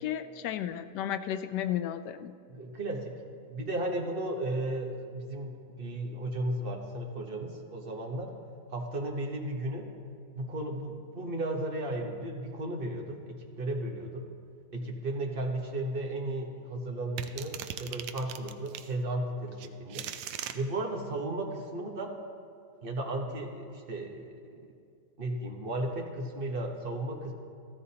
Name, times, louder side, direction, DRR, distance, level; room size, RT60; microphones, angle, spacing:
voice 1, 0.0-2.3, left 10 dB, 90° left, 11 dB, 1.2 m, -33 dB
voice 2, 2.5-3.1 3.5-8.3 8.7-9.9 10.4-14.3 14.7-20.1 20.5-22.2 22.8-24.4 25.2-27.3, right 1 dB, 40° right, 2 dB, 1.1 m, -34 dB
sound 1, 17.2-18.9 19.6-20.6, right 10 dB, 80° right, 1.1 m, -39 dB
14.5 x 13.5 x 2.8 m, 2.4 s
omnidirectional pair, 1.8 m